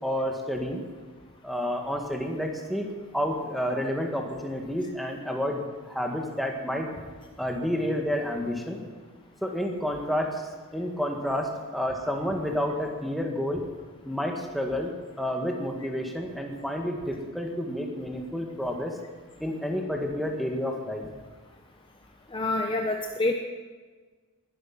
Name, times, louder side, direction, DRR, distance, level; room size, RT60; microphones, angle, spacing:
voice 1, 0.0-0.8 1.4-6.9 7.4-8.8 9.4-10.4 10.7-13.7 14.1-19.0 19.4-21.1, equal, ahead, 2 dB, 1.9 m, -30 dB
voice 2, 22.3-23.3, left 2 dB, 25° left, 3 dB, 0.8 m, -27 dB
20.0 x 11.0 x 6.1 m, 1.4 s
head